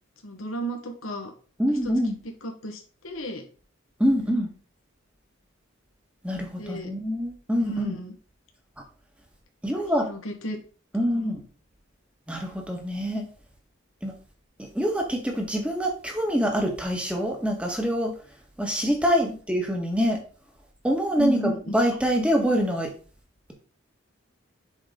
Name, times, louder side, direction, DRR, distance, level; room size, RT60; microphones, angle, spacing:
voice 1, 0.2-1.3 1.8-1.9 2.4-3.4 6.6-6.9 7.6-8.1 10.0-10.6 11.1-11.3 21.2-21.8, right 1 dB, 85° left, 3 dB, 1.7 m, -33 dB
voice 2, 1.6-2.2 4.0-4.5 6.2-8.0 9.6-10.1 10.9-11.4 12.3-13.3 14.0-14.1 14.6-18.1 18.6-20.2 20.8-22.9, equal, 5° right, 1 dB, 1.7 m, -25 dB
8.0 x 5.8 x 4.0 m, 0.39 s
head